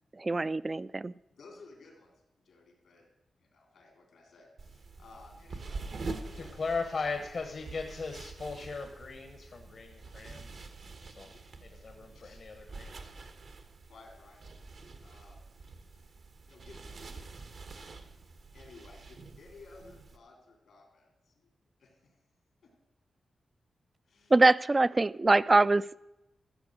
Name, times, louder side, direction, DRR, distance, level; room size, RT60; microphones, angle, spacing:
voice 1, 0.2-1.1 24.3-25.8, right 2 dB, 30° right, 18 dB, 0.3 m, -23 dB
voice 2, 1.3-2.1 2.4-3.1 3.4-6.6 11.2-11.6 12.1-12.5 13.9-14.5 15.0-15.7 16.0-16.1 16.5-18.1 18.5-21.5 21.8-22.2 22.6-22.7 24.0-24.4, left 3 dB, 85° left, 1 dB, 3.6 m, -56 dB
sound 1, 4.6-20.2, right 3 dB, 70° right, 1.1 m, -46 dB
voice 3, 6.4-10.7 11.2-11.3 11.8-13.0, left 4 dB, 60° left, 5 dB, 1.1 m, -38 dB
14.0 x 7.0 x 6.4 m, 0.92 s
cardioid pair, 65°, 0 cm